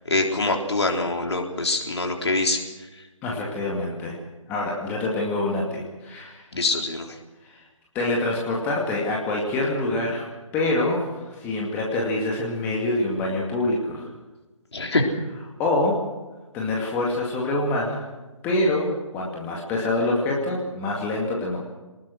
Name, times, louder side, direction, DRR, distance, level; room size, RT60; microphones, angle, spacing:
voice 1, 0.1-2.6 6.5-7.1 14.7-15.0, left 2 dB, 55° left, 3 dB, 3.8 m, -24 dB
voice 2, 3.2-4.2 4.5-6.4 7.4-7.6 7.9-10.2 10.5-14.1 15.6-16.0 16.5-18.1 18.4-21.6, left 2 dB, 10° left, -2 dB, 2.3 m, -25 dB
25.0 x 20.0 x 6.4 m, 1.2 s
figure-of-eight pair, 150°, 17 cm